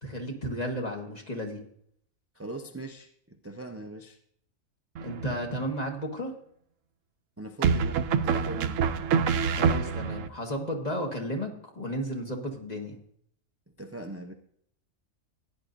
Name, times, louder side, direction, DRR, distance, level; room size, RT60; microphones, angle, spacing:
voice 1, 0.0-1.6 5.0-6.4 9.5-13.0, equal, 30° left, 1 dB, 1.7 m, -33 dB
voice 2, 2.3-4.2 7.4-8.8 13.8-14.3, right 2 dB, 20° right, 4 dB, 0.4 m, -40 dB
sound 1, 5.0-5.6 7.6-10.3, right 6 dB, 75° right, 1.0 m, -26 dB
16.0 x 10.0 x 2.6 m, 0.67 s
omnidirectional pair, 1.4 m